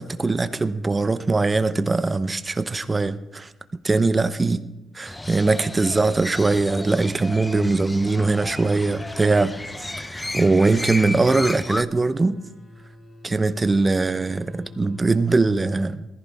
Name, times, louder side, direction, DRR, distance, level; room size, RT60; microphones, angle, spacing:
voice 1, 0.0-3.5 3.8-4.6 5.0-9.5 10.0-12.3 13.2-16.1, right 3 dB, 25° right, 11 dB, 0.9 m, -21 dB
Crow, 5.1-11.8, left 2 dB, 15° left, 0.6 m, -33 dB
sound 1, 10.6-15.5, left 2 dB, 35° left, 2.6 m, -45 dB
20.5 x 14.5 x 3.6 m, 0.97 s
cardioid pair, 90°, 0 cm